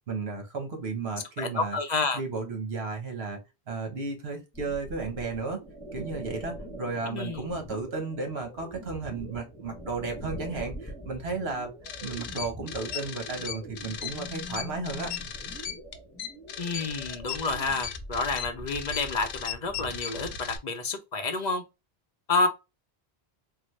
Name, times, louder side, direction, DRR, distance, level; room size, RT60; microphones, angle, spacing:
voice 1, 0.1-1.8 2.1-3.4 3.7-5.6 5.9-11.7 12.0-15.1, right 4 dB, 75° right, 1.2 m, -34 dB
voice 2, 1.4-2.2 7.1-7.4 16.6-21.6 22.3-22.5, left 3 dB, 50° left, 0.6 m, -29 dB
sound 1, 4.5-20.0, equal, 10° left, 0.7 m, -43 dB
sound 2, 11.8-20.6, left 9 dB, 80° left, 0.8 m, -37 dB
3.8 x 2.1 x 3.0 m
omnidirectional pair, 1.1 m